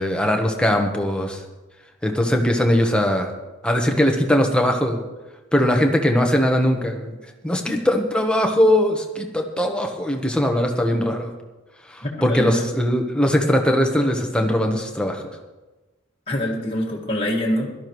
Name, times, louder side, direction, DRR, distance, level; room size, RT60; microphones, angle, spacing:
voice 1, 0.0-1.4 2.0-3.3 3.6-5.0 5.5-7.2 7.4-11.3 11.9-15.2, equal, 5° left, 3 dB, 1.1 m, -20 dB
voice 2, 12.0-12.7 16.3-17.7, left 1 dB, 25° left, -3 dB, 1.9 m, -25 dB
17.0 x 12.5 x 3.1 m, 1.2 s
head